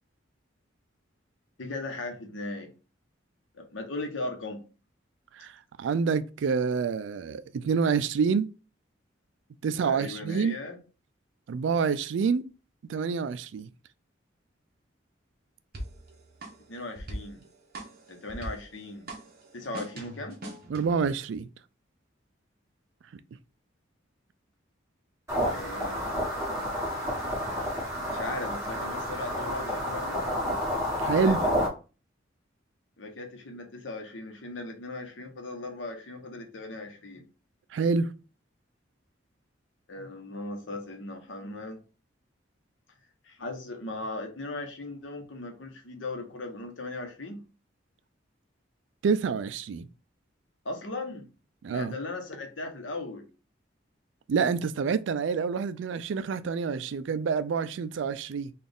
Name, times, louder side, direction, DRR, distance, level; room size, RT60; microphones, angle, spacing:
voice 1, 1.6-2.7 3.5-4.6 9.8-10.8 16.7-17.4 18.1-19.1 19.5-20.4 25.4-26.0 28.1-30.3 31.1-31.7 33.0-37.2 39.9-41.8 43.2-47.4 50.6-51.2 51.7-53.2, left 2 dB, 75° left, 1.0 m, -38 dB
voice 2, 5.4-8.5 9.6-10.6 11.5-12.5 12.9-13.7 20.7-21.5 31.0-31.4 37.7-38.1 49.0-49.9 51.6-51.9 54.3-58.5, right 5 dB, 70° right, 0.3 m, -27 dB
sound 1, 15.7-21.1, right 1 dB, 50° right, 1.0 m, -42 dB
sound 2, 25.3-31.7, equal, 15° right, 1.6 m, -30 dB
4.0 x 2.4 x 3.5 m
head